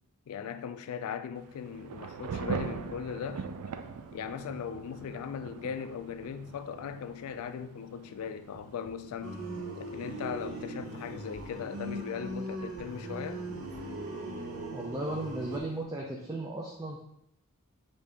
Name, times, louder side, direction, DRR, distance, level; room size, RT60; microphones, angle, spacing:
voice 1, 0.3-3.5 4.1-9.4 9.8-13.5, left 7 dB, 70° left, 0.3 m, -38 dB
Thunder / Rain, 1.4-15.8, right 5 dB, 85° right, 0.4 m, -44 dB
sound 1, 9.2-15.6, right 1 dB, 70° right, 0.8 m, -39 dB
voice 2, 14.7-17.0, right 1 dB, 15° right, 0.4 m, -36 dB
5.1 x 2.7 x 3.4 m
head